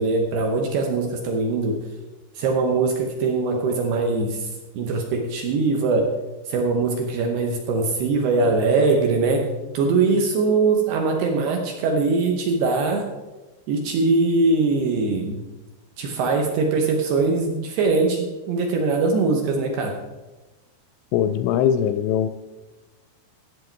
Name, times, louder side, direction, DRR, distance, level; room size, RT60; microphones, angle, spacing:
voice 1, 0.0-1.8 2.4-4.5 4.8-6.1 6.5-13.1 13.7-15.4 16.0-20.0, right 3 dB, 75° right, 2 dB, 2.6 m, -22 dB
voice 2, 21.1-22.3, left 9 dB, 85° left, 11 dB, 2.7 m, -21 dB
13.5 x 8.0 x 4.5 m, 1.1 s
omnidirectional pair, 5.6 m